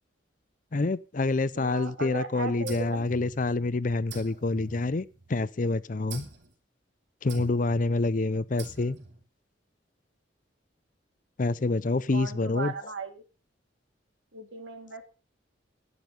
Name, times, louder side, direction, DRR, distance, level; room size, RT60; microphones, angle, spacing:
voice 1, 0.7-6.2 7.2-9.0 11.4-12.7, left 3 dB, 45° left, 0.5 m, -27 dB
voice 2, 1.5-3.1 12.1-13.2 14.3-15.1, right 3 dB, 85° right, 2.6 m, -37 dB
sound 1, 2.7-3.7 4.1-5.4 6.1-6.5 7.3-7.8 8.6-9.2, right 3 dB, 70° right, 2.8 m, -44 dB
12.0 x 9.9 x 5.2 m
head